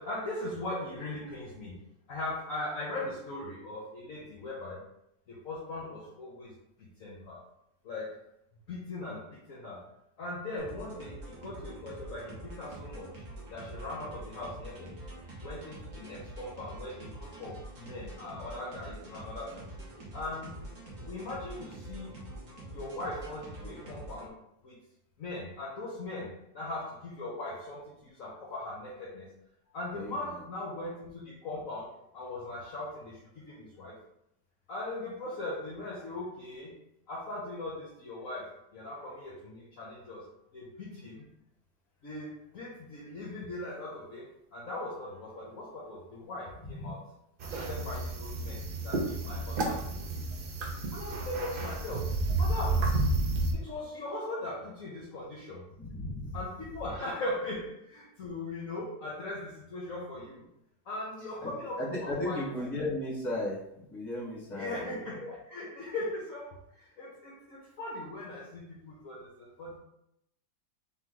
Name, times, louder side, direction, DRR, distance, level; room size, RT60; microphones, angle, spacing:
voice 1, 0.0-1.8 2.1-4.8 5.3-7.4 7.8-8.2 8.7-9.8 10.2-13.2 13.5-15.0 15.4-19.7 20.1-20.5 21.0-22.2 22.7-24.3 24.6-24.8 25.2-29.3 29.7-34.0 34.7-36.8 37.1-40.3 40.5-41.3 42.0-47.0 47.4-50.1 50.9-53.0 53.5-55.6 56.3-60.5 60.8-62.5 64.5-69.8, left 2 dB, 55° left, -5 dB, 1.2 m, -39 dB
sound 1, 10.6-24.3, right 1 dB, 50° right, 1.4 m, -45 dB
sound 2, 47.4-53.5, right 2 dB, 80° right, 0.4 m, -31 dB
voice 2, 55.8-56.3 61.8-64.9 65.2-65.3, left 1 dB, 25° left, -5 dB, 1.3 m, -35 dB
3.8 x 3.1 x 3.8 m, 0.79 s
omnidirectional pair, 1.8 m